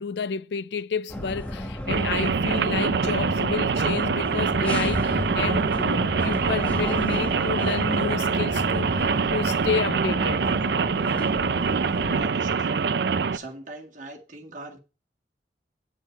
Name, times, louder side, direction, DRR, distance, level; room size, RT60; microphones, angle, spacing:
voice 1, 0.0-10.4, left 6 dB, 75° left, 0.4 m, -30 dB
sound 1, 1.1-12.3, left 1 dB, 10° left, 1.2 m, -33 dB
Rain, 1.9-13.4, right 5 dB, 70° right, 0.5 m, -24 dB
voice 2, 12.0-12.9 13.3-14.8, right 2 dB, 45° right, 2.0 m, -41 dB
9.3 x 8.2 x 4.5 m
head